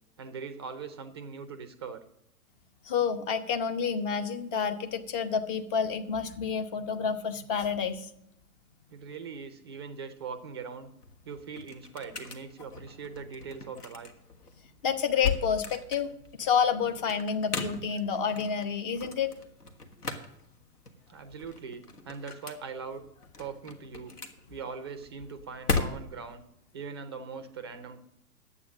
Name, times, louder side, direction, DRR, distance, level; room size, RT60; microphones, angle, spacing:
voice 1, 0.2-2.0 8.9-10.9 11.3-14.1 21.1-23.0 23.4-24.1 24.5-26.4 26.7-28.0, right 5 dB, 20° right, 11 dB, 0.4 m, -41 dB
voice 2, 2.8-8.1 14.8-16.1 16.4-19.3, left 6 dB, 35° left, 8 dB, 1.0 m, -29 dB
sound 1, 10.8-26.4, left 4 dB, 75° left, 1.6 m, -38 dB
10.5 x 8.3 x 6.3 m, 0.77 s
figure-of-eight pair, 115°, 47 cm